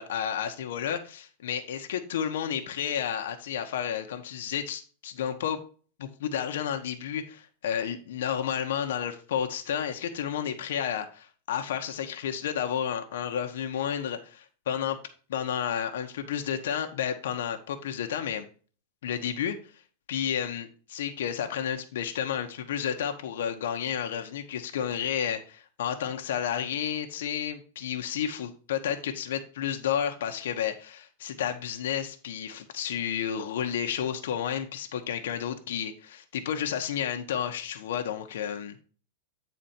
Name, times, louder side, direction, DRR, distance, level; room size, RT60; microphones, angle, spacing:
voice 1, 0.0-5.6 6.0-15.0 15.3-18.5 19.0-19.6 20.1-38.8, left 9 dB, 75° left, 5 dB, 1.1 m, -31 dB
9.3 x 4.3 x 4.3 m, 0.39 s
supercardioid pair, 180°, 0 cm